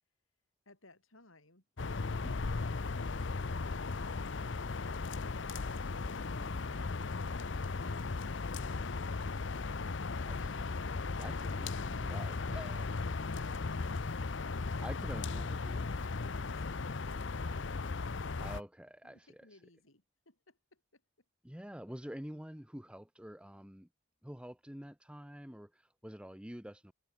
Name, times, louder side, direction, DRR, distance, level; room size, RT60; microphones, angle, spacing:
voice 1, 0.7-1.6 16.2-18.2 19.0-21.3, left 2 dB, 80° left, 7.2 m, -62 dB
sound 1, 1.8-18.6, left 4 dB, 60° left, 0.7 m, -37 dB
voice 2, 2.2-2.7 6.4-6.8 10.2-10.9 11.2-12.9 13.4-13.5 14.8-15.9 18.4-19.4 21.4-23.9 24.2-26.9, equal, 5° right, 1.0 m, -48 dB
head